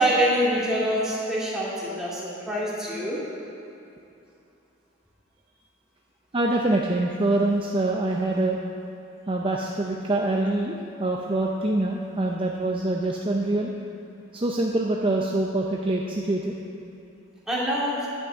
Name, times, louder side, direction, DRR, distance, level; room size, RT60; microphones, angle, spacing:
voice 1, 0.0-3.2 17.5-18.1, right 1 dB, 5° right, -7 dB, 2.3 m, -25 dB
voice 2, 6.3-8.6 9.3-13.7 14.3-16.5, right 2 dB, 25° right, -1 dB, 0.6 m, -25 dB
11.0 x 6.0 x 8.2 m, 2.7 s
head